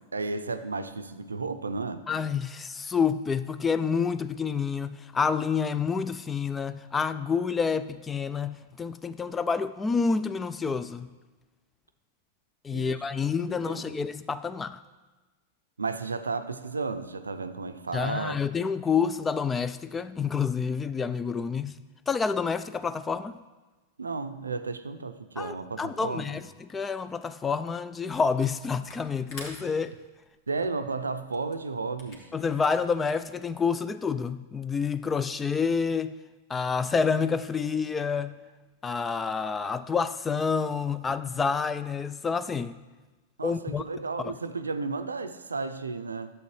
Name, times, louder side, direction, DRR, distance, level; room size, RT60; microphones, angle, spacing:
voice 1, 0.1-2.0 12.7-13.1 13.7-13.9 15.8-18.4 24.0-26.4 30.5-32.2 43.4-46.3, right 4 dB, 85° right, 0.5 m, -33 dB
voice 2, 2.1-11.1 12.6-14.8 17.9-21.8 22.1-23.4 25.4-29.9 32.3-36.2 36.5-38.4 38.8-42.8 43.4-43.8 44.3-44.4, left 5 dB, 15° left, 0.3 m, -28 dB
Camera, 28.1-28.6 28.8-33.4, left 2 dB, 45° left, 1.9 m, -48 dB
11.5 x 7.5 x 3.2 m
figure-of-eight pair, 95°, 0 cm